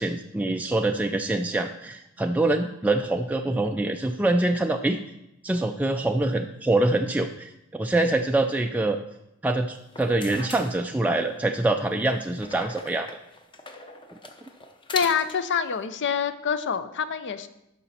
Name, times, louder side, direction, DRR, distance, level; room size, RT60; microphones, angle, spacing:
voice 1, 0.0-5.0 5.4-9.0 9.4-13.1, right 2 dB, 5° right, 3 dB, 0.3 m, -25 dB
sound 1, 9.8-11.4 12.4-15.5, left 3 dB, 25° left, 0.7 m, -39 dB
voice 2, 14.9-17.5, left 6 dB, 55° left, 12 dB, 0.6 m, -26 dB
12.5 x 5.1 x 4.2 m, 0.86 s
head